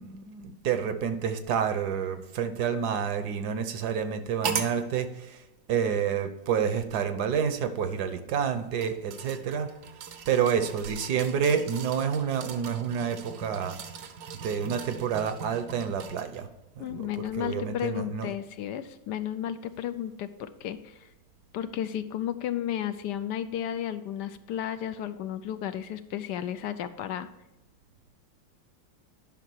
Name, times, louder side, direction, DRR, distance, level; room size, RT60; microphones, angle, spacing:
voice 1, 0.0-5.4 5.7-9.7 10.3-13.8 14.4-16.5 16.8-18.3, right 7 dB, 70° right, 10 dB, 1.2 m, -29 dB
sound 1, 4.4-4.8 5.8-5.9 8.3-16.4 16.9-17.0, right 7 dB, 85° right, 1.6 m, -39 dB
voice 2, 16.8-21.1 21.5-27.3, left 10 dB, 75° left, 11 dB, 1.1 m, -33 dB
10.5 x 5.7 x 4.6 m, 0.96 s
omnidirectional pair, 1.9 m